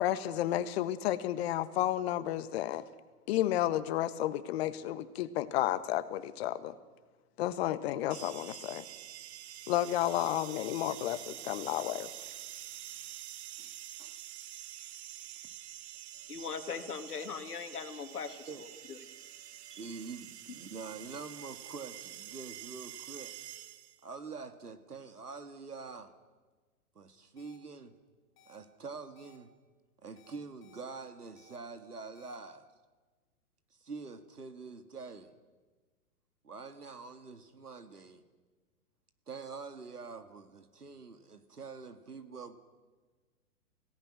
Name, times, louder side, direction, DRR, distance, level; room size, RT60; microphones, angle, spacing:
voice 1, 0.0-2.8 3.3-6.7 7.4-8.8 9.7-12.1, left 13 dB, 45° left, 13 dB, 1.5 m, -32 dB
sound 1, 8.1-24.1, right 12 dB, 45° right, 1.3 m, -47 dB
voice 2, 12.1-12.5 13.6-13.7 14.0-14.2 16.4-16.5 18.5-18.7 19.7-23.3 24.0-26.1 27.0-27.9 28.5-29.5 30.0-32.7 33.8-35.4 36.4-38.2 39.3-42.6, right 4 dB, 85° right, 8 dB, 2.2 m, -46 dB
voice 3, 16.1-19.1, left 6 dB, 80° left, 8 dB, 2.3 m, -41 dB
sound 2, 27.4-27.6 28.4-28.6 29.1-29.4 30.2-30.8 31.4-31.6 32.1-32.4, left 2 dB, 25° left, 5.3 m, -61 dB
29.0 x 17.5 x 6.4 m, 1.3 s
figure-of-eight pair, 115°, 45 cm